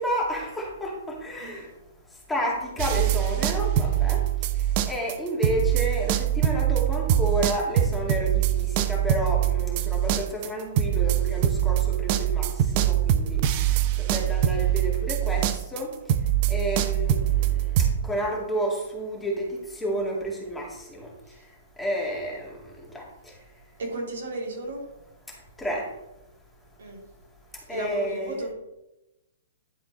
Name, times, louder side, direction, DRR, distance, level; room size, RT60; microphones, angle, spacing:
voice 1, 0.0-1.7 2.3-4.2 4.8-12.5 12.7-13.4 14.0-15.9 16.5-17.2 17.5-21.1 21.8-22.5 22.8-23.0 25.6-25.9 27.7-28.4, equal, 5° left, -2 dB, 2.1 m, -30 dB
sound 1, 2.8-5.2 5.4-17.9, right 11 dB, 40° right, 0.6 m, -23 dB
voice 2, 23.8-24.8 26.8-27.0 27.7-28.5, right 2 dB, 65° right, -1 dB, 2.5 m, -34 dB
11.0 x 4.2 x 4.1 m, 0.92 s
figure-of-eight pair, 120°, 0 cm